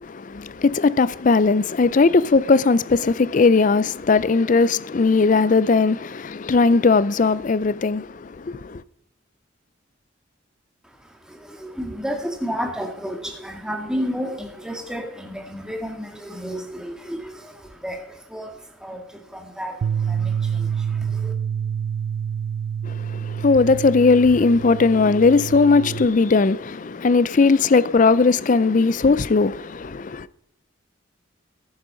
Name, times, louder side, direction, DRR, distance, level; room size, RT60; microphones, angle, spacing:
voice 1, 0.0-8.8 22.8-30.3, left 4 dB, 40° left, 0.4 m, -18 dB
voice 2, 10.8-21.3, equal, 5° right, 1.9 m, -32 dB
Bass guitar, 19.8-26.1, right 7 dB, 80° right, 0.3 m, -27 dB
14.5 x 9.5 x 5.1 m
head